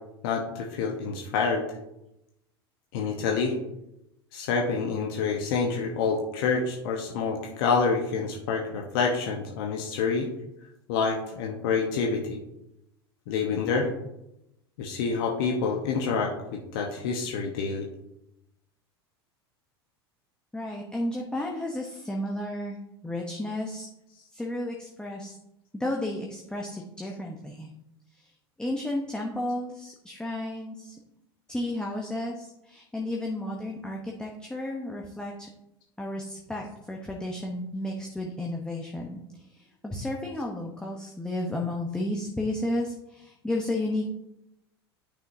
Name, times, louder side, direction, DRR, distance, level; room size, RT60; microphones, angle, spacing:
voice 1, 0.2-1.7 2.9-3.5 4.3-10.3 10.9-12.4 13.3-13.9 14.8-17.9, left 5 dB, 60° left, 1 dB, 1.1 m, -27 dB
voice 2, 20.5-22.8 23.0-23.9 24.3-25.4 25.7-27.7 28.1-28.3 28.6-31.0 31.5-35.5 36.0-44.1, left 1 dB, 5° left, -1 dB, 1.0 m, -33 dB
10.0 x 6.1 x 2.7 m, 0.87 s
hypercardioid pair, 80°, 13 cm